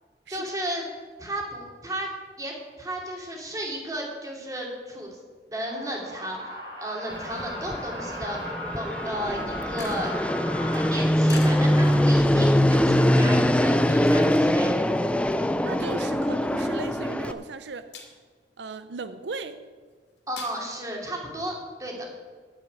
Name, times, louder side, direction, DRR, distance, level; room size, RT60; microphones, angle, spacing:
voice 1, 0.3-0.8 1.2-2.1 2.4-5.2 5.5-10.1 10.6-14.7 20.3-22.1, right 1 dB, 20° right, 0 dB, 2.7 m, -34 dB
sound 1, 5.6-10.9, equal, 65° right, 4.3 m, -37 dB
Fixed-wing aircraft airplane, 7.1-17.3, equal, 5° left, 0.4 m, -23 dB
sound 2, 9.8-14.7 15.0-16.9 17.2-17.5 17.8-18.5 18.9-20.5, left 4 dB, 80° left, 2.7 m, -44 dB
voice 2, 15.6-17.9 18.6-19.6, right 4 dB, 85° right, 12 dB, 0.6 m, -36 dB
9.9 x 8.2 x 9.3 m, 1.5 s
head